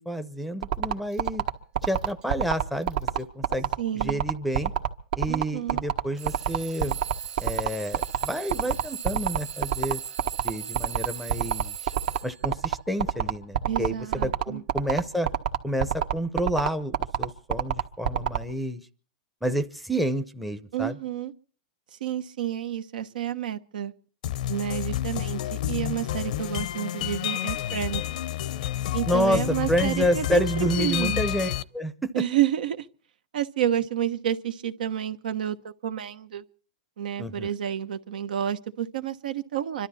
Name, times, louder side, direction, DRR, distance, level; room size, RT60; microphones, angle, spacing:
voice 1, 0.0-1.4 1.8-4.7 5.2-7.0 7.4-10.0 10.4-11.9 12.2-15.3 15.6-18.8 19.4-21.0 29.1-32.2 37.2-37.5, equal, ahead, 0.7 m, -29 dB
sound 1, 0.6-18.4, right 9 dB, 65° right, 1.4 m, -25 dB
Alarm / Clock, 1.1-1.3 1.8-2.2 2.8-3.2 4.1-4.2 6.2-12.6, right 9 dB, 25° right, 1.0 m, -39 dB
voice 2, 3.8-4.2 5.3-5.8 13.7-14.6 20.7-21.3 22.0-23.9 24.5-28.0 28.9-31.3 32.1-32.9 33.3-36.4 37.0-39.9, right 10 dB, 80° right, 1.2 m, -30 dB
sound 2, 24.2-31.6, left 13 dB, 65° left, 0.7 m, -30 dB
26.5 x 12.5 x 4.2 m
supercardioid pair, 160°, 5 cm